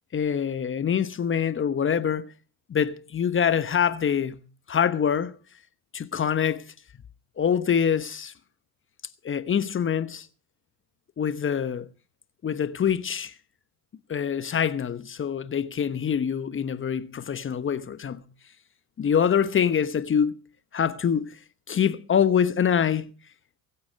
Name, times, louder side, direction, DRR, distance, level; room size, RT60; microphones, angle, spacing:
voice 1, 0.1-2.3 2.7-4.4 4.7-5.3 5.9-6.7 7.4-8.3 9.2-10.3 11.2-11.9 12.4-13.3 14.1-18.2 19.0-20.4 20.7-21.3 21.7-23.1, left 8 dB, 30° left, 1.1 m, -25 dB
21.0 x 8.6 x 5.2 m
hypercardioid pair, 65°, 42 cm